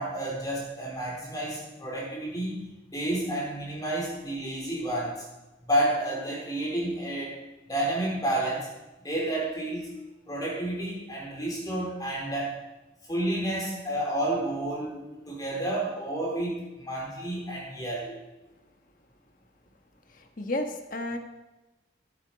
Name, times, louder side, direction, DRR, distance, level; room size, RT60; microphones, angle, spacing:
voice 1, 0.0-5.2 5.6-7.4 7.7-8.7 9.0-9.9 10.3-12.6 13.1-15.0 15.3-18.2, right 1 dB, 20° left, -4 dB, 3.6 m, -30 dB
voice 2, 20.1-21.2, left 1 dB, 45° left, 5 dB, 1.4 m, -32 dB
16.0 x 8.8 x 5.2 m, 1.1 s
head